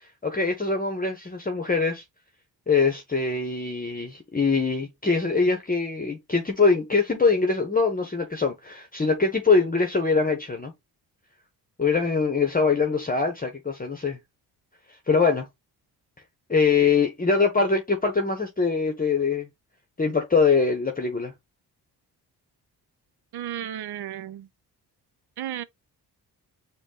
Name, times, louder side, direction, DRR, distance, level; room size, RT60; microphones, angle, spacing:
voice 1, 0.2-2.0 2.7-10.7 11.8-14.2 15.1-15.5 16.5-19.5 20.0-21.3, left 4 dB, 20° left, 0.9 m, -23 dB
voice 2, 23.3-24.5 25.4-25.6, right 11 dB, 70° right, 0.6 m, -33 dB
5.1 x 2.3 x 3.8 m
cardioid pair, 75°, 40 cm